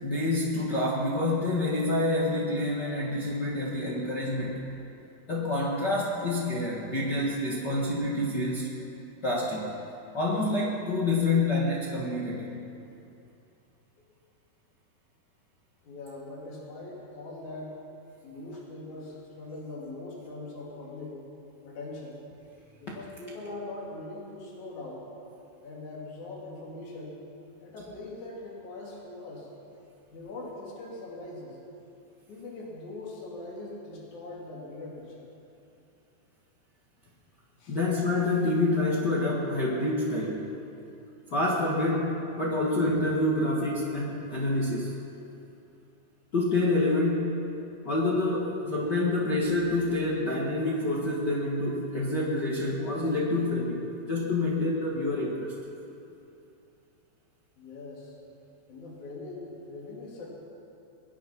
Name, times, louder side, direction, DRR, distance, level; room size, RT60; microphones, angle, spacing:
voice 1, 0.0-4.6 5.3-8.7 9.2-9.7 10.1-12.6 37.7-40.5 41.3-45.0 46.3-47.4 47.8-55.5, left 2 dB, 70° left, -4 dB, 1.0 m, -27 dB
voice 2, 15.8-17.8 18.2-21.2 21.6-22.2 22.8-25.1 25.6-27.2 27.6-29.5 30.1-31.6 32.3-35.3 37.6-37.8 57.6-58.1 58.7-60.3, left 2 dB, 50° left, -4 dB, 4.0 m, -41 dB
22.0 x 10.5 x 6.0 m, 2.7 s
omnidirectional pair, 4.7 m